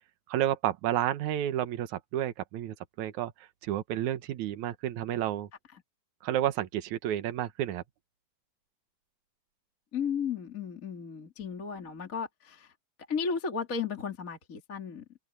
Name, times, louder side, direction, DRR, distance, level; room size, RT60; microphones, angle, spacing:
voice 1, 0.3-3.3 3.6-5.5 6.2-7.8, right 12 dB, 75° right, 1.7 m, -31 dB
voice 2, 9.9-12.7 13.1-15.2, left 6 dB, 25° left, 1.9 m, -34 dB
omnidirectional pair, 5.0 m